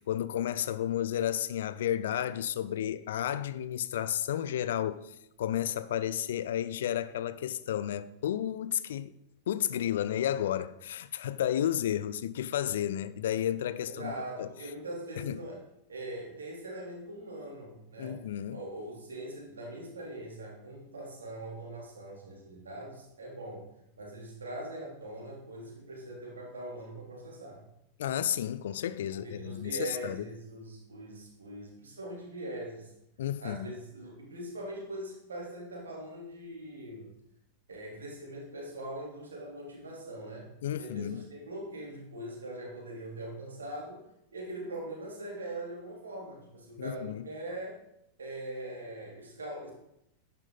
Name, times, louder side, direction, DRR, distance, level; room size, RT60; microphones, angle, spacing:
voice 1, 0.0-9.1 9.5-14.1 14.4-14.5 15.2-15.4 18.0-18.6 28.0-30.3 33.2-33.7 40.6-41.2 46.8-47.3, left 11 dB, 60° left, 0.5 m, -32 dB
voice 2, 13.9-15.6 15.9-18.2 18.5-23.7 24.0-27.6 29.1-32.9 33.4-37.1 37.7-40.5 40.8-44.0 44.3-47.8 48.2-49.7, right 1 dB, 70° right, 3.5 m, -42 dB
11.0 x 9.0 x 4.0 m
figure-of-eight pair, 90°, 0 cm